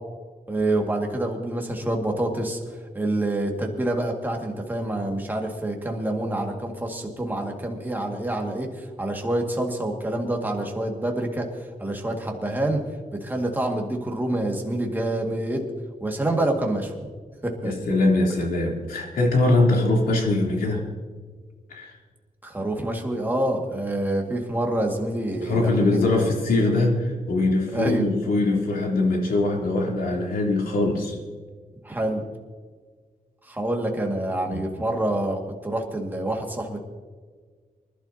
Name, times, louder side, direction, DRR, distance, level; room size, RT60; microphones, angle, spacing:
voice 1, 0.5-2.6 2.9-11.5 11.8-12.8 13.1-15.6 16.0-17.0 17.4-17.8 22.4-26.3 27.7-28.1 31.8-32.2 33.4-36.8, right 1 dB, 15° right, 1 dB, 2.0 m, -27 dB
voice 2, 17.6-20.8 21.7-21.9 25.4-31.2 34.5-34.6, left 2 dB, 90° left, -1 dB, 3.4 m, -22 dB
25.0 x 12.0 x 2.9 m, 1.5 s
wide cardioid pair, 130°, 15 cm